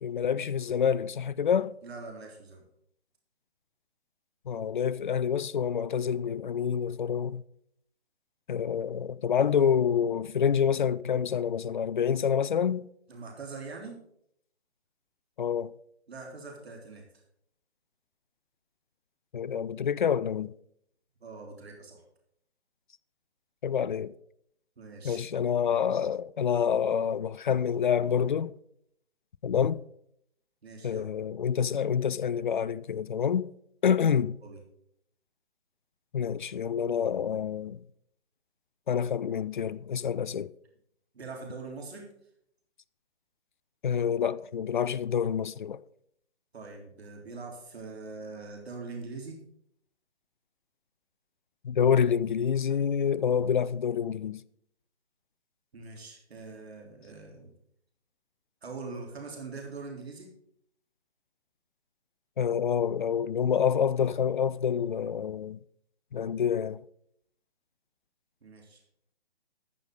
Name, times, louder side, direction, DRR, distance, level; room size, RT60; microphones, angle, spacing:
voice 1, 0.0-1.7 4.5-7.4 8.5-12.9 15.4-15.7 19.3-20.5 23.6-24.1 25.0-28.5 29.4-29.8 30.8-33.5 33.8-34.4 36.1-37.8 38.9-40.5 43.8-45.8 51.6-54.4 62.4-65.6 66.1-66.8, left 7 dB, 50° left, 0.5 m, -27 dB
voice 2, 1.8-2.6 13.1-14.0 16.1-17.0 21.2-22.0 24.8-25.2 30.6-31.0 34.4-34.6 41.1-42.1 46.5-49.4 55.7-57.5 58.6-60.3 68.4-68.8, right 3 dB, 65° right, 3.6 m, -43 dB
13.5 x 6.6 x 5.3 m
hypercardioid pair, 150°, 33 cm